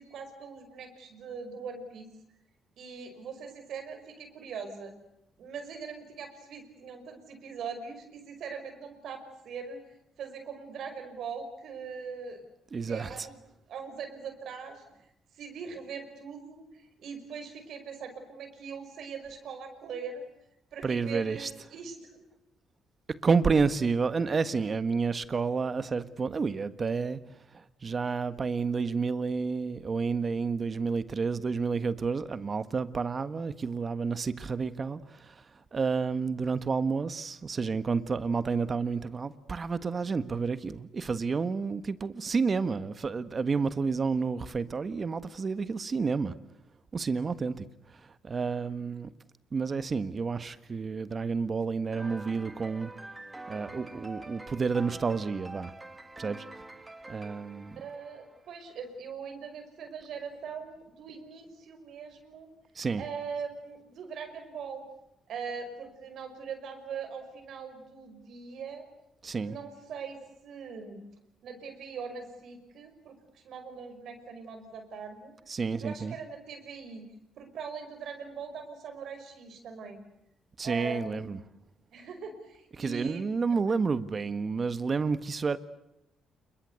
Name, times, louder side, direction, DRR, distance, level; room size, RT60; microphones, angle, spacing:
voice 1, 0.0-2.1 2.8-4.9 5.4-9.8 10.2-12.4 12.9-13.4 13.7-14.8 15.3-20.3 20.7-22.2 57.8-62.5 63.0-64.8 65.3-68.8 69.4-71.0 71.4-75.3 75.8-77.1 77.4-80.0 80.6-81.4 81.9-83.3 83.7-83.8, right 5 dB, 70° right, 5.6 m, -41 dB
voice 2, 12.7-13.3 20.8-21.7 23.2-27.2 27.5-35.4 35.7-46.3 46.9-47.7 48.2-49.1 49.5-52.9 53.5-55.7 56.2-56.4 57.1-57.8 62.7-63.0 69.2-69.6 75.5-76.2 80.6-81.4 82.7-85.6, right 5 dB, 40° right, 1.5 m, -30 dB
sound 1, 51.9-58.6, right 2 dB, 15° right, 2.4 m, -46 dB
28.0 x 22.5 x 8.3 m
cardioid pair, 90°, 0 cm